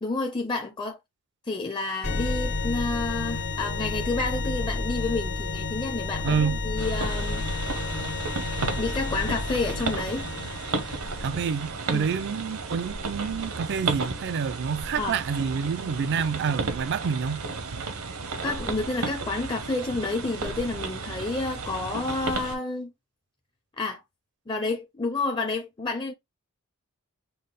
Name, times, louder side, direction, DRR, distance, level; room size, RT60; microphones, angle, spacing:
voice 1, 0.0-1.0 1.4-6.4 6.6-7.5 8.5-10.2 11.9-12.1 15.0-15.2 18.4-22.9 23.8-24.0 24.5-26.1, left 3 dB, 20° left, 0.5 m, -30 dB
sound 1, 2.0-11.4, left 3 dB, 80° left, 1.6 m, -31 dB
voice 2, 6.2-6.6 11.2-17.4, right 6 dB, 55° right, 0.4 m, -28 dB
sound 2, 6.8-22.6, right 4 dB, 75° right, 0.9 m, -33 dB
5.4 x 2.0 x 3.9 m
head